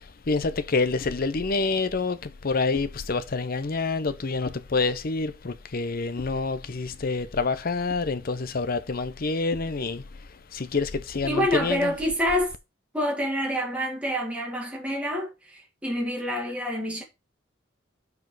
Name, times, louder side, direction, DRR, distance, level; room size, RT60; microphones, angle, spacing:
voice 1, 0.0-10.0 10.5-11.9, left 4 dB, 50° left, 0.6 m, -27 dB
voice 2, 11.2-12.5 12.9-17.0, equal, 5° right, 1.9 m, -27 dB
6.2 x 4.8 x 4.7 m
head